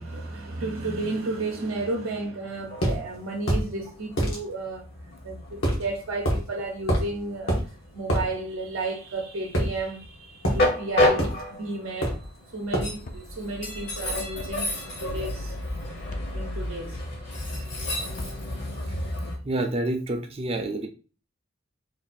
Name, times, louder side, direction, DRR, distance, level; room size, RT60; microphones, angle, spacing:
voice 1, 0.0-4.8 5.2-7.6 7.9-12.2 12.5-14.7 15.0-15.5 16.3-17.0, right 2 dB, 75° right, 0.7 m, -32 dB
Train, 2.6-19.4, left 1 dB, 55° left, 1.1 m, -31 dB
sound 1, 2.8-3.0 3.5-3.7 4.2-4.4 5.6-5.8 6.2-6.4 6.9-7.1 7.5-7.6 8.1-8.2 9.5-10.1 10.4-10.6 11.2-11.4 12.0-12.3 12.7-12.9, equal, 75° left, 1.4 m, -25 dB
sound 2, 13.0-13.3 14.4-14.6 16.1-16.3 18.1-18.4, left 1 dB, 40° left, 0.5 m, -40 dB
voice 2, 19.4-20.9, right 2 dB, 30° right, 0.5 m, -28 dB
3.3 x 2.5 x 4.1 m
head